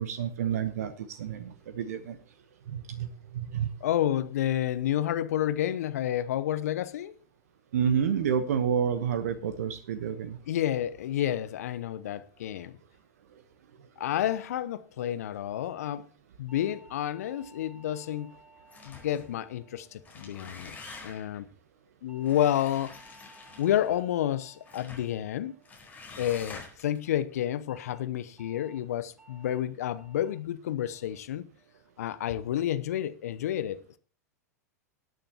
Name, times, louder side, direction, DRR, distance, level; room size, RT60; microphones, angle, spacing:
voice 1, 0.0-2.2 2.7-3.7 7.7-10.4, right 8 dB, 65° right, 1.1 m, -29 dB
voice 2, 3.8-7.1 10.5-12.8 14.0-16.1 16.4-18.3 18.8-20.8 21.0-21.5 22.0-23.0 23.6-25.5 26.2-31.4 32.0-34.0, left 11 dB, 65° left, 0.9 m, -30 dB
sound 1, 16.5-20.9 22.1-26.5 27.7-28.0 28.4-28.8 29.2-29.6 30.0-30.4 30.8-31.2 31.6-32.0, right 2 dB, 10° right, 7.3 m, -58 dB
sound 2, 18.7-19.3 19.9-21.4 22.2-24.0 24.6-25.1 25.6-27.0, left 4 dB, 20° left, 4.7 m, -47 dB
20.0 x 9.0 x 2.9 m
figure-of-eight pair, 90°, 9 cm